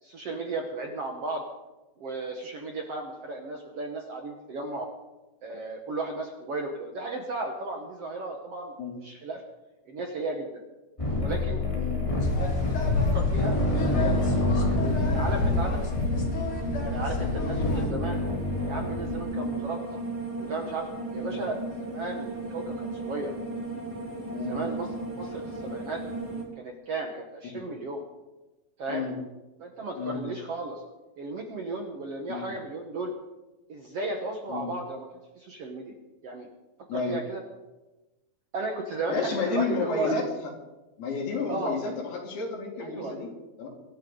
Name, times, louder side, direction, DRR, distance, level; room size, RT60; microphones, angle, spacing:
voice 1, 0.0-1.4 2.0-4.9 5.4-8.7 9.0-9.4 9.9-10.6 11.2-11.6 12.4-14.1 14.7-15.8 16.8-18.2 18.7-20.0 20.4-23.3 24.4-26.0 26.6-28.0 28.8-29.1 29.6-30.8 31.2-33.1 33.7-35.1 35.4-36.0 36.2-36.5 36.9-37.4 38.5-40.1 41.5-41.8 42.8-43.1, right 2 dB, 55° right, 2 dB, 1.8 m, -35 dB
sound 1, 11.0-19.2, left 2 dB, 10° left, 3.0 m, -28 dB
sound 2, 12.2-17.8, left 3 dB, 45° left, 2.1 m, -29 dB
sound 3, 13.7-26.4, right 2 dB, 10° right, 2.2 m, -36 dB
voice 2, 39.1-40.2 41.0-43.3 43.6-43.7, left 4 dB, 85° left, -1 dB, 4.9 m, -31 dB
24.0 x 12.0 x 3.9 m, 1.1 s
omnidirectional pair, 4.4 m